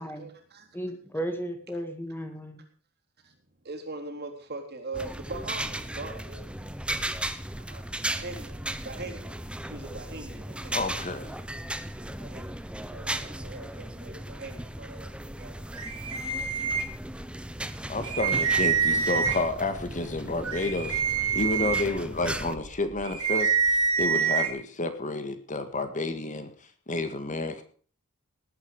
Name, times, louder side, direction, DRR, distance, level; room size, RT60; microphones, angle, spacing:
voice 1, 0.2-0.8 3.2-3.4 3.6-6.8 7.0-7.8 8.1-9.4 9.6-11.0 12.0-15.5, right 3 dB, 50° right, 3 dB, 3.7 m, -42 dB
voice 2, 0.7-2.6, right 1 dB, 10° left, 6 dB, 2.0 m, -34 dB
sound 1, 4.9-22.6, right 1 dB, 5° right, 0.9 m, -36 dB
voice 3, 10.7-11.4 17.9-21.0 21.3-23.5 24.0-26.5 26.9-27.6, left 2 dB, 35° left, 9 dB, 1.9 m, -30 dB
sound 2, 15.7-17.3 17.7-17.8 18.0-19.6 20.1-24.5, right 6 dB, 90° right, 4.0 m, -27 dB
19.0 x 9.6 x 4.9 m, 0.43 s
head